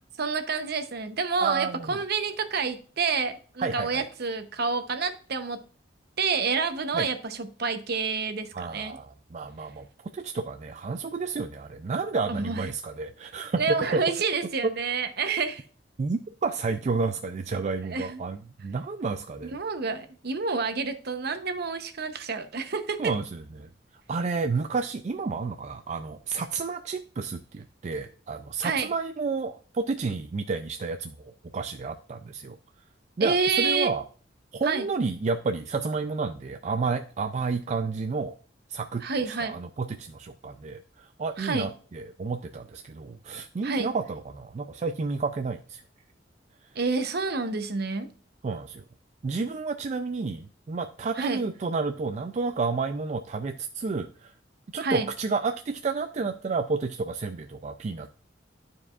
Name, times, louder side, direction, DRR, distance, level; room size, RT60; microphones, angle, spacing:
voice 1, 0.2-5.6 6.2-9.0 12.3-12.7 13.6-15.6 17.8-18.2 19.5-23.1 28.6-28.9 33.2-33.9 34.6-34.9 39.0-39.6 41.4-41.7 43.6-43.9 46.7-48.1 51.2-51.4 54.8-55.1, right 4 dB, 60° right, 0.8 m, -28 dB
voice 2, 1.4-2.0 3.6-4.1 6.9-7.1 8.5-14.0 14.6-14.7 16.0-19.6 23.0-23.7 24.1-32.6 33.2-34.1 34.5-38.4 38.7-45.8 48.4-48.8 49.2-54.3 54.7-58.1, right 4 dB, 40° right, 0.4 m, -31 dB
12.0 x 4.7 x 2.4 m
head